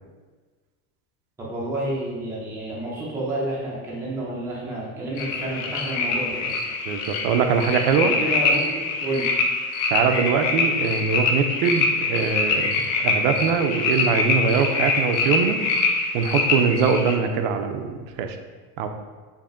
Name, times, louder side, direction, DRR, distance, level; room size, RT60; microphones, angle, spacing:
voice 1, 1.4-6.5 7.9-9.4, right 1 dB, 5° right, -5 dB, 0.4 m, -30 dB
sound 1, 5.2-17.2, left 4 dB, 60° left, 0.6 m, -24 dB
voice 2, 6.9-8.2 9.9-15.6 16.1-17.9 18.2-18.4 18.8-18.9, right 6 dB, 85° right, 6 dB, 0.5 m, -22 dB
4.9 x 2.6 x 2.5 m, 1.4 s
cardioid pair, 175°, 38 cm